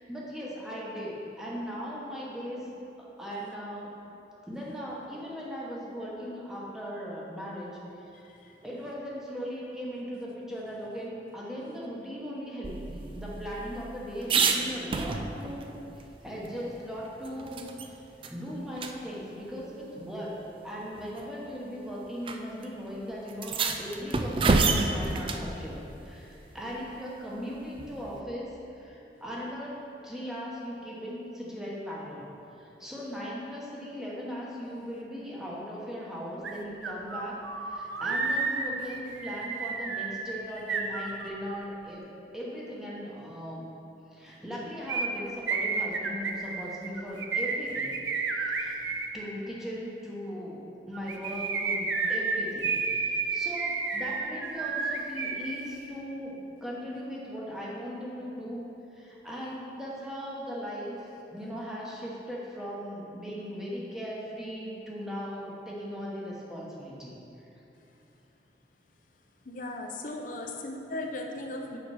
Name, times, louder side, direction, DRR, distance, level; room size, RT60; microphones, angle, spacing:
voice 1, 0.0-2.7 3.0-3.9 4.4-7.7 8.0-8.1 8.6-15.7 15.9-18.0 18.3-32.3 32.6-42.1 42.3-43.7 44.1-48.0 48.3-48.8 49.1-58.6 58.9-67.5, equal, 5° right, -6 dB, 1.1 m, -38 dB
voice 2, 8.1-8.5 69.5-71.8, left 2 dB, 45° left, 2 dB, 0.7 m, -37 dB
sound 1, 12.6-15.6 16.0-16.1 16.4-17.9 18.2-18.4 18.8-18.9 20.0-20.1 21.0-21.2 22.2-22.4 22.6-22.7 23.3-25.5 27.8-28.2, right 4 dB, 30° right, 0.3 m, -29 dB
sound 2, 36.4-36.5 36.8-41.6 44.9-49.1 50.9-55.6 55.8-55.9, right 4 dB, 85° right, 0.6 m, -31 dB
6.9 x 5.8 x 4.9 m, 3.0 s
head